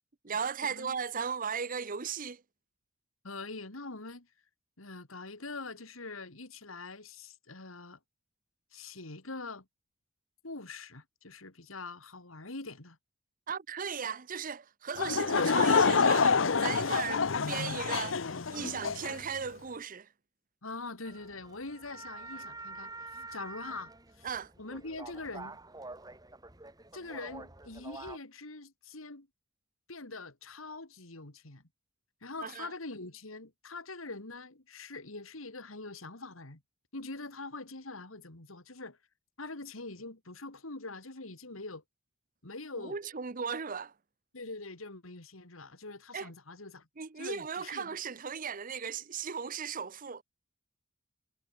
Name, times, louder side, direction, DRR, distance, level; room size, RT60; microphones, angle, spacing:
voice 1, 0.2-2.4 13.5-20.1 24.2-24.5 32.4-32.7 42.8-43.9 46.1-46.3 47.0-50.2, right 6 dB, 40° right, 0.8 m, -37 dB
voice 2, 3.2-4.3 4.8-8.0 8.7-9.7 10.4-13.0 20.6-24.3 24.6-25.6 26.9-29.3 29.9-31.6 32.2-36.6 36.9-39.0 39.4-41.8 42.4-43.0 44.3-46.9 47.2-48.0, left 3 dB, 90° left, 2.9 m, -43 dB
Laughter / Crowd, 15.0-19.2, left 5 dB, 65° left, 0.8 m, -27 dB
sound 1, 21.0-28.2, right 3 dB, 20° right, 2.9 m, -47 dB
head